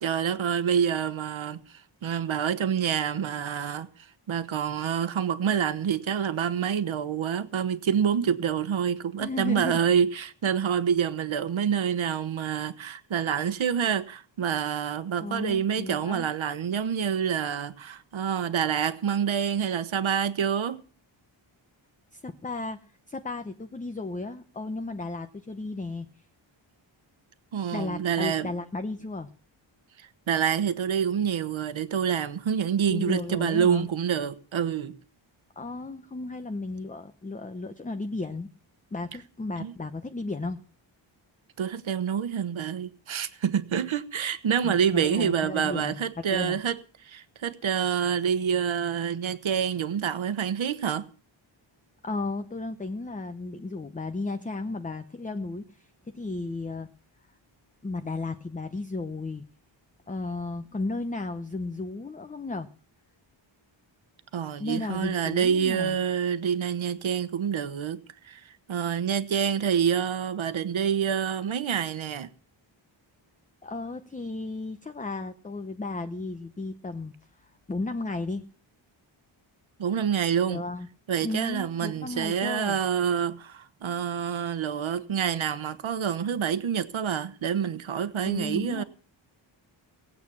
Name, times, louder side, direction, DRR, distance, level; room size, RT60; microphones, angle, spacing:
voice 1, 0.0-20.8 27.5-28.5 30.0-35.0 39.6-39.7 41.6-51.1 64.3-72.3 79.8-80.6 81.1-88.8, right 8 dB, 75° right, 1.3 m, -27 dB
voice 2, 9.2-9.8 15.2-16.3 22.1-22.8 23.1-26.1 27.7-29.3 32.9-33.9 35.6-38.5 38.9-40.6 44.6-46.6 52.0-55.9 56.1-56.9 57.8-59.4 60.1-62.7 64.6-66.0 73.6-78.5 80.5-80.9 81.2-82.8 88.2-88.8, left 3 dB, 15° left, 0.8 m, -34 dB
19.0 x 8.6 x 7.1 m
wide cardioid pair, 165°, 48 cm